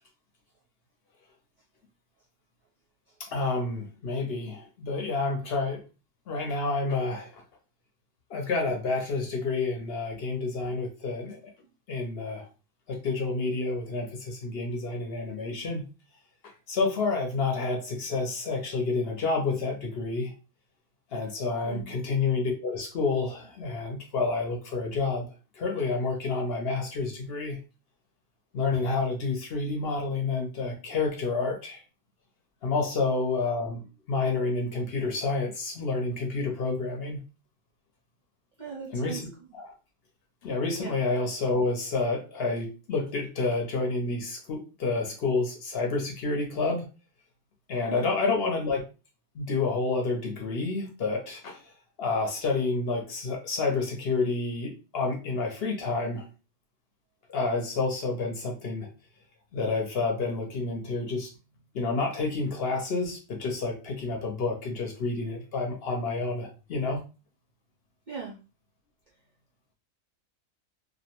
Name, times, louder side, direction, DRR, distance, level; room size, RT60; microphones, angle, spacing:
voice 1, 3.2-5.8 6.3-7.4 8.3-11.4 11.9-12.5 12.9-15.9 16.7-20.3 21.1-25.3 25.6-27.6 28.5-31.8 32.6-37.2 38.9-39.3 39.5-39.7 40.4-46.8 47.7-48.8 49.3-51.6 52.0-56.2 57.3-58.9 59.5-61.3 61.7-67.0, left 3 dB, 55° left, 2 dB, 0.7 m, -29 dB
voice 2, 38.6-39.2 40.8-40.9 47.9-48.1 68.1-68.4, right 6 dB, 60° right, -4 dB, 0.5 m, -38 dB
2.4 x 2.1 x 2.9 m, 0.32 s
omnidirectional pair, 1.4 m